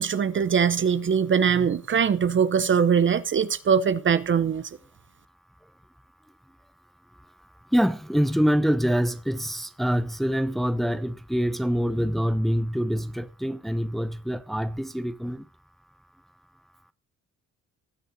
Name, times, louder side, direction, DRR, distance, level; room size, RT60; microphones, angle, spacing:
voice 1, 0.0-4.7, right 7 dB, 40° right, 0.8 m, -22 dB
voice 2, 7.7-15.4, equal, ahead, 0.8 m, -25 dB
18.5 x 6.7 x 4.1 m
cardioid pair, 90°, 30 cm